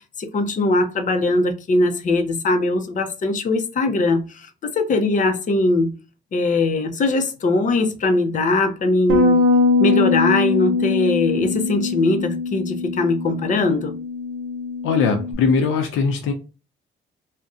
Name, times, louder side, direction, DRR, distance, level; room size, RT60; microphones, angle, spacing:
voice 1, 0.2-5.9 6.3-9.4 9.8-14.0, left 2 dB, 40° left, 0.6 m, -21 dB
Bass guitar, 9.1-15.3, left 3 dB, 80° right, 0.7 m, -22 dB
voice 2, 14.8-16.3, left 5 dB, 90° left, 0.6 m, -20 dB
2.5 x 2.1 x 3.6 m
cardioid pair, 90°, 20 cm